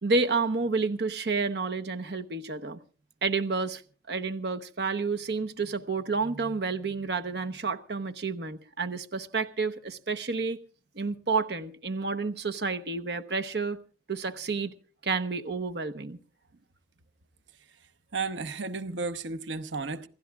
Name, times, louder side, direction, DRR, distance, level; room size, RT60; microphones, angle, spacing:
voice 1, 0.0-2.8 3.2-3.8 4.1-10.6 10.9-13.8 14.1-14.7 15.0-16.2, right 4 dB, 65° right, 0.9 m, -30 dB
voice 2, 18.1-20.1, right 4 dB, 85° right, 0.9 m, -33 dB
27.5 x 17.0 x 2.4 m
head